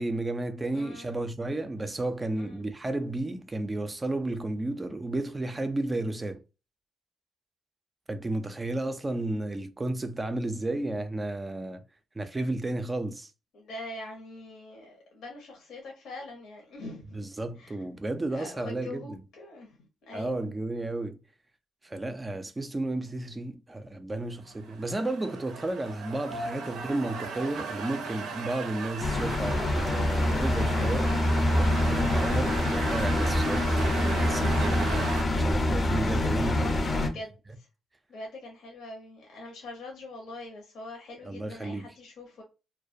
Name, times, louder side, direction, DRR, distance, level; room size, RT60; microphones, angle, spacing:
voice 1, 0.0-6.4 8.1-11.8 12.2-13.3 17.1-19.2 20.1-21.2 21.8-35.1 35.3-36.8 41.2-41.9, right 2 dB, 20° right, 0.3 m, -33 dB
voice 2, 0.7-1.2 2.4-2.7 13.5-17.2 17.6-17.7 18.3-20.5 26.6-26.9 35.9-37.7 38.1-42.4, left 2 dB, 75° left, 0.7 m, -44 dB
sound 1, 24.5-35.2, right 4 dB, 90° right, 0.5 m, -37 dB
sound 2, 29.0-37.1, left 1 dB, 35° left, 0.5 m, -25 dB
2.3 x 2.1 x 2.5 m
cardioid pair, 90°, 0 cm